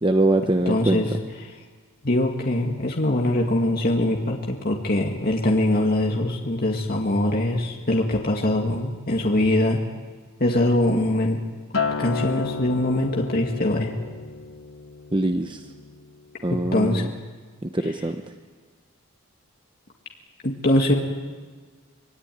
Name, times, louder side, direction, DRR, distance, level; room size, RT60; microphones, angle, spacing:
voice 1, 0.0-1.0 15.1-15.6 16.4-17.1 17.6-18.2, right 2 dB, 20° right, 6 dB, 0.9 m, -23 dB
voice 2, 0.7-1.1 2.0-9.8 10.4-11.4 12.0-13.9 16.7-17.0 20.4-20.9, left 1 dB, 45° left, 0 dB, 2.1 m, -22 dB
Acoustic guitar, 11.7-16.2 16.5-16.9, left 5 dB, 65° left, 1.4 m, -32 dB
25.5 x 20.0 x 9.4 m, 1.5 s
head